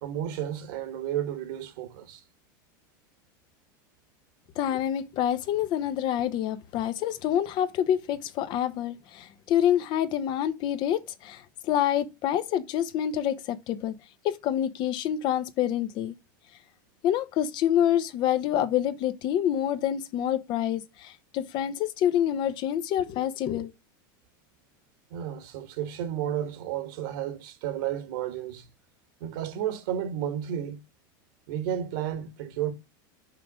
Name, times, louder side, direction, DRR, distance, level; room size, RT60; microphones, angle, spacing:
voice 1, 0.0-2.2 25.1-28.7 29.2-30.8 31.5-32.7, right 10 dB, 65° right, 1.8 m, -32 dB
voice 2, 4.6-14.0 14.2-16.1 17.0-23.7, left 10 dB, 40° left, 0.8 m, -27 dB
5.8 x 4.9 x 6.2 m
supercardioid pair, 140°, 11 cm